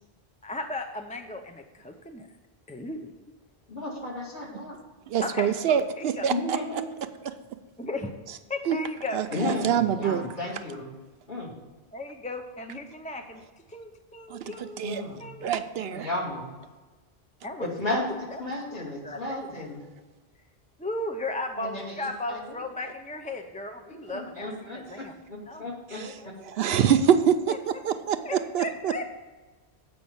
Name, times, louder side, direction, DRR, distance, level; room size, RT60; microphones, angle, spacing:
voice 1, 0.4-2.3 2.7-3.1 5.1-6.3 7.8-8.1 8.5-9.2 11.9-13.4 13.7-15.5 17.4-17.7 18.3-18.4 18.7-19.7 20.8-25.1 25.5-26.3 27.5-27.8 28.2-29.1, left 2 dB, 10° left, 5 dB, 0.4 m, -36 dB
voice 2, 3.7-4.8 6.3-6.8 9.3-10.9 11.3-11.5 14.8-15.2 15.8-16.5 17.6-18.1 18.4-19.8 21.6-22.6 24.1-26.0 27.0-27.1, left 2 dB, 50° left, -3 dB, 2.5 m, -33 dB
voice 3, 5.1-6.8 7.3-7.4 8.7-8.8 9.1-10.2 14.3-15.0 15.4-16.1 25.9-26.2 26.4-28.9, right 8 dB, 75° right, 9 dB, 0.8 m, -25 dB
7.8 x 5.3 x 7.0 m, 1.2 s
omnidirectional pair, 1.1 m